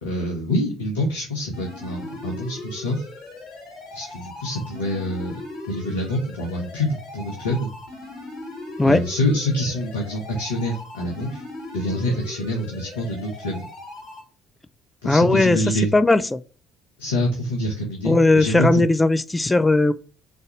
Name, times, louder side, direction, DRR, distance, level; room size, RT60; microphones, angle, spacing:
voice 1, 0.0-3.1 3.9-5.4 5.7-7.7 8.8-11.4 11.7-13.7 15.0-15.9 17.0-18.8, left 1 dB, 80° left, 1.5 m, -26 dB
sound 1, 1.5-14.2, left 2 dB, 60° left, 4.0 m, -39 dB
voice 2, 15.0-15.6 15.9-16.4 18.1-19.9, left 2 dB, 15° left, 0.5 m, -17 dB
5.1 x 4.1 x 5.8 m
figure-of-eight pair, 55°, 0 cm